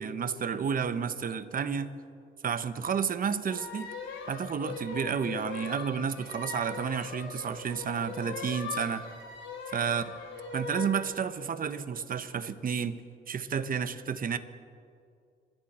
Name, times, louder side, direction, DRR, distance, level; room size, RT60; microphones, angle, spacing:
voice 1, 0.0-1.9 2.4-3.9 4.3-9.0 9.7-10.0 10.5-13.0 13.3-14.4, right 7 dB, 45° right, 11 dB, 1.0 m, -31 dB
sound 1, 3.5-11.0, left 4 dB, 70° left, 3.5 m, -40 dB
26.5 x 12.0 x 4.4 m, 2.3 s
cardioid pair, 90°, 20 cm